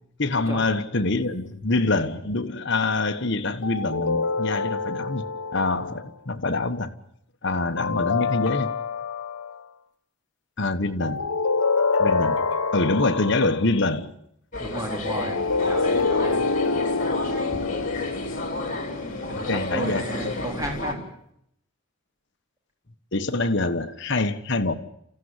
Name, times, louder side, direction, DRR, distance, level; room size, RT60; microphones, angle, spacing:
voice 1, 0.2-5.2 5.5-6.9 7.4-8.7 10.6-11.2 12.0-12.4 12.7-14.1 19.3-20.3 23.1-24.7, left 2 dB, 50° left, 1.3 m, -25 dB
sound 1, 3.6-6.1 7.8-9.6 11.0-13.7 15.1-19.6, left 4 dB, 80° left, 1.0 m, -26 dB
sound 2, 14.5-20.9, left 2 dB, 35° left, 3.8 m, -32 dB
voice 2, 14.6-16.5 19.2-21.1, right 1 dB, 15° right, 3.9 m, -33 dB
28.0 x 15.5 x 9.8 m
head